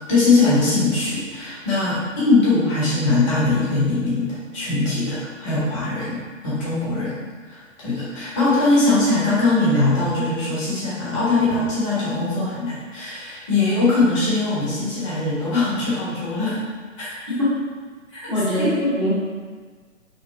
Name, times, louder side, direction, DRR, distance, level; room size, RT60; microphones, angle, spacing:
voice 1, 0.1-7.1 7.5-16.6 17.0-17.2 18.1-18.3 18.6-18.8, left 3 dB, 25° left, -8 dB, 1.4 m, -21 dB
voice 2, 18.3-19.2, left 1 dB, 5° right, -11 dB, 0.6 m, -22 dB
5.9 x 2.3 x 3.4 m, 1.5 s
figure-of-eight pair, 125°, 39 cm